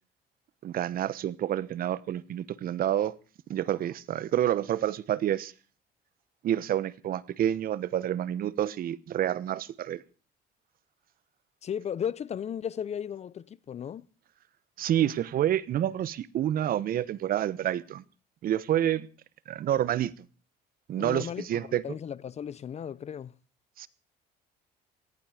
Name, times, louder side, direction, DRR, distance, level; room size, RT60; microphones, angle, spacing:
voice 1, 0.6-3.2 3.5-5.5 6.4-10.0 14.8-18.0 18.4-19.1 19.5-20.2 20.9-21.8 23.8-23.9, right 11 dB, 60° right, 1.1 m, -28 dB
voice 2, 11.6-14.1 21.0-23.4, left 8 dB, 40° left, 0.7 m, -35 dB
18.5 x 14.5 x 5.0 m
cardioid pair, 110°, 17 cm